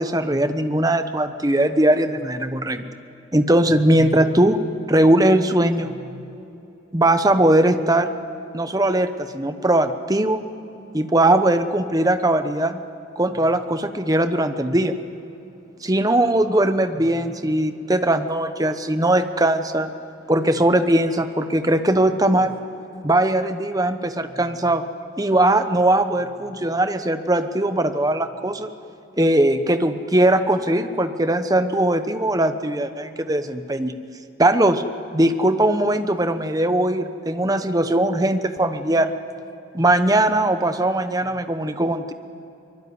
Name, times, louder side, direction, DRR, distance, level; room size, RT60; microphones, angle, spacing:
voice 1, 0.0-2.8 3.3-4.6 4.9-6.0 6.9-8.1 8.5-10.4 10.9-12.8 13.2-15.0 15.8-19.9 20.3-22.6 23.0-24.8 25.2-28.7 29.2-33.9 34.4-34.8 35.1-39.1 39.7-42.1, right 1 dB, 20° right, 9 dB, 1.0 m, -20 dB
24.0 x 22.0 x 9.6 m, 3.0 s
head